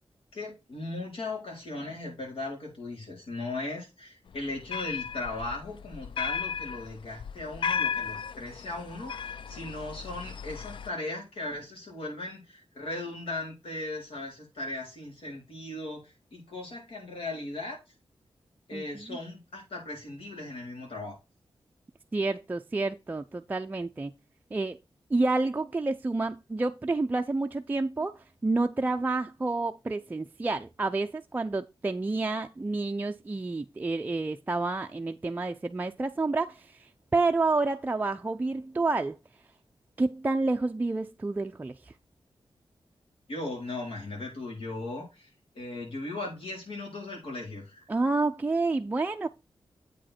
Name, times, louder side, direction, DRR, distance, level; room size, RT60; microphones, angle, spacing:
voice 1, 0.3-17.8 18.7-21.2 43.3-45.3 45.5-47.8, left 2 dB, 85° left, 4.0 m, -37 dB
sound 1, 4.3-10.9, left 6 dB, 60° left, 0.3 m, -35 dB
voice 2, 18.7-19.2 22.1-24.1 24.5-24.8 25.1-39.2 40.0-41.9 47.9-49.3, right 3 dB, 20° right, 0.4 m, -29 dB
8.3 x 5.0 x 4.3 m
wide cardioid pair, 135°, 9 cm